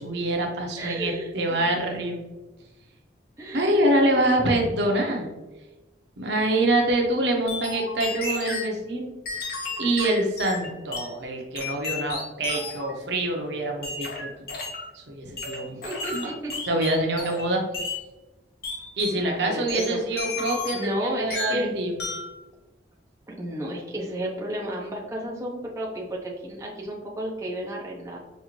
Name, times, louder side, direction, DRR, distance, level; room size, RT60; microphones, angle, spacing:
voice 1, 0.0-2.2 3.5-5.3 6.2-9.1 9.8-14.3 14.9-15.8 16.1-16.3 16.7-17.6 19.0-22.0, right 1 dB, 65° right, 2 dB, 0.8 m, -25 dB
voice 2, 0.8-1.7 3.4-3.8 15.7-16.5 19.1-20.3 20.7-21.7 23.3-28.2, right 1 dB, 15° right, -3 dB, 0.6 m, -32 dB
sound 1, 7.5-8.7 9.2-11.1 11.5-12.9 13.8-14.9 15.4-17.5 17.7-18.0 18.6-19.2 19.7-21.0 21.3-21.7 22.0-22.3, left 3 dB, 55° left, 0.9 m, -33 dB
5.4 x 2.5 x 3.0 m, 1.1 s
head